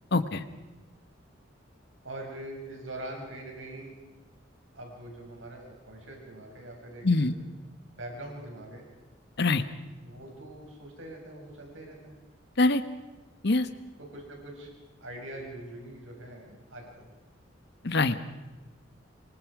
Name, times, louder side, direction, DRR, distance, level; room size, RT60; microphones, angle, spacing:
voice 1, 0.1-0.4 7.0-7.4 9.4-9.6 12.6-12.8 13.4-13.7 17.8-18.2, left 2 dB, 60° left, 11 dB, 1.3 m, -23 dB
voice 2, 2.0-4.0 4.7-7.3 7.9-8.8 10.0-12.2 14.0-14.7 15.0-17.1, right 1 dB, 90° right, 0 dB, 6.5 m, -43 dB
27.0 x 24.0 x 5.0 m, 1.2 s
head